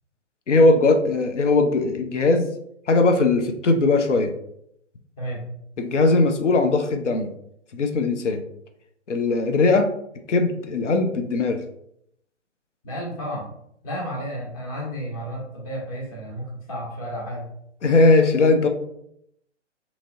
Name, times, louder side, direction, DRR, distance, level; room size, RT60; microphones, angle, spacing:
voice 1, 0.5-2.5 2.9-4.3 5.8-7.3 7.7-8.4 9.1-9.9 10.3-11.6 17.8-18.7, left 3 dB, 75° left, 6 dB, 0.6 m, -19 dB
voice 2, 12.8-13.5 13.8-17.5, equal, 30° left, -3 dB, 1.1 m, -32 dB
2.9 x 2.9 x 2.6 m, 0.73 s
figure-of-eight pair, 130°, 37 cm